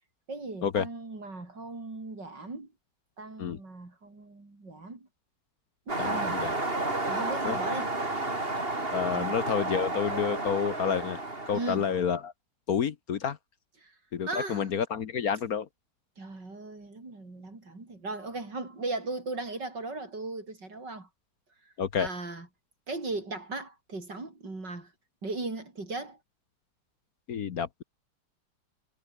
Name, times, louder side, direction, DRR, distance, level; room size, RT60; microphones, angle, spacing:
voice 1, 0.3-2.7 3.2-5.1 5.9-6.5 7.1-7.9 9.1-9.3 11.5-11.9 13.8-13.9 14.3-14.7 16.2-21.1 22.0-22.5 22.9-24.9 25.2-26.2, right 3 dB, 70° right, 6.3 m, -37 dB
sound 1, 5.9-12.0, right 2 dB, 30° right, 4.2 m, -31 dB
voice 2, 6.0-6.5 7.4-7.6 8.9-12.3 12.7-13.4 14.1-15.7 21.8-22.1 27.3-27.8, left 7 dB, 55° left, 1.5 m, -29 dB
omnidirectional pair, 2.0 m